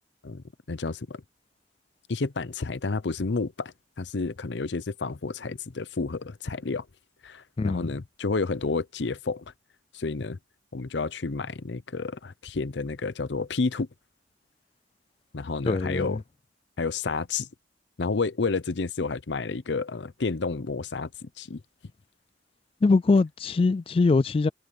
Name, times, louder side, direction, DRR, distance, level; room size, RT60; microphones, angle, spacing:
voice 1, 0.2-1.2 2.1-6.9 7.2-9.4 9.9-10.4 10.7-13.9 15.3-16.2 16.8-17.5 18.0-21.6, left 4 dB, 70° left, 0.7 m, -30 dB
voice 2, 7.6-7.9 15.7-16.2 22.8-24.5, left 3 dB, 30° left, 0.3 m, -22 dB
head